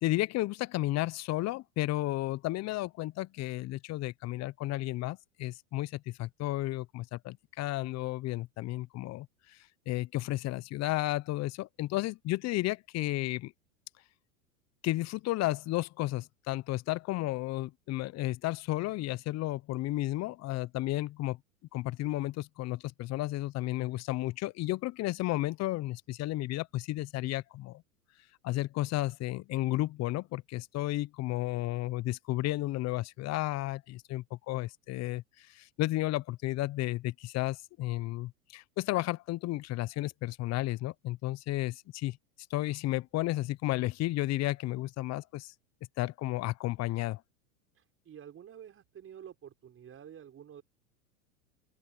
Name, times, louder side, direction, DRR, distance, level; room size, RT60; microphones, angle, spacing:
voice 1, 0.0-9.3 9.9-13.5 14.8-21.4 21.7-27.8 28.4-42.2 42.5-45.5 46.0-47.2, left 17 dB, 35° left, 0.9 m, -33 dB
voice 2, 47.7-50.6, right 9 dB, 30° right, 5.6 m, -49 dB
open air
hypercardioid pair, 100°, 43 cm